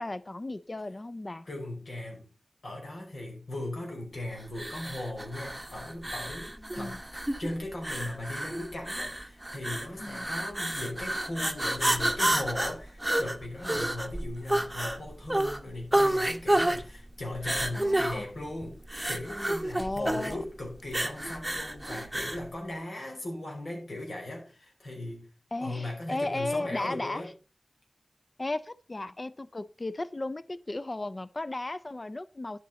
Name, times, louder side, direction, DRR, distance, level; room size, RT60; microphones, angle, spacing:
voice 1, 0.0-1.5 6.6-7.0 10.0-10.3 17.7-18.2 19.8-20.4 25.5-27.3 28.4-32.6, left 2 dB, 40° left, 0.4 m, -35 dB
voice 2, 1.4-2.3 2.6-18.8 19.1-25.3 25.6-27.3, left 1 dB, 85° left, 4.6 m, -38 dB
sound 1, 4.5-22.5, right 1 dB, 10° right, 1.0 m, -30 dB
11.0 x 8.3 x 4.1 m
wide cardioid pair, 65°, 0 cm